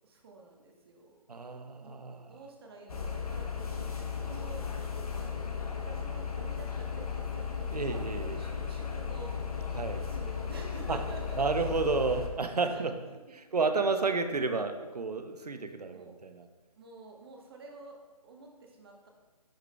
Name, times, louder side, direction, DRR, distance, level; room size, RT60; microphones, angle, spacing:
voice 1, 0.0-1.1 1.5-4.7 5.1-5.4 5.8-9.4 10.0-12.0 12.7-12.8 13.1-13.2 15.9-16.2 16.8-19.1, right 3 dB, 40° right, 1 dB, 1.1 m, -50 dB
voice 2, 1.3-2.3 7.7-8.4 9.7-10.1 10.9-11.0 11.4-12.9 13.5-16.5, right 4 dB, 80° right, 8 dB, 0.7 m, -31 dB
sound 1, 2.9-12.3, left 6 dB, 70° left, 0.9 m, -35 dB
10.5 x 4.8 x 2.3 m, 1.3 s
figure-of-eight pair, 145°, 20 cm